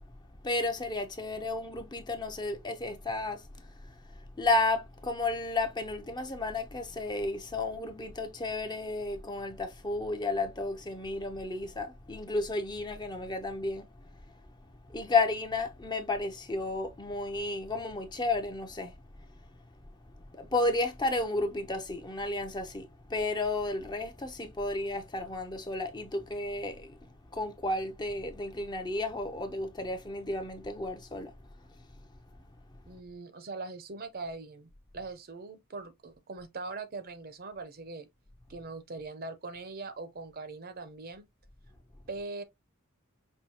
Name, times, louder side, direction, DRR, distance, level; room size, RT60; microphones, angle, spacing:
voice 1, 0.4-14.1 14.9-19.0 20.3-31.3, left 2 dB, 20° left, 0.6 m, -32 dB
voice 2, 32.9-38.1 38.5-41.3 42.1-42.4, right 3 dB, 45° right, 0.7 m, -41 dB
5.5 x 2.8 x 2.7 m
head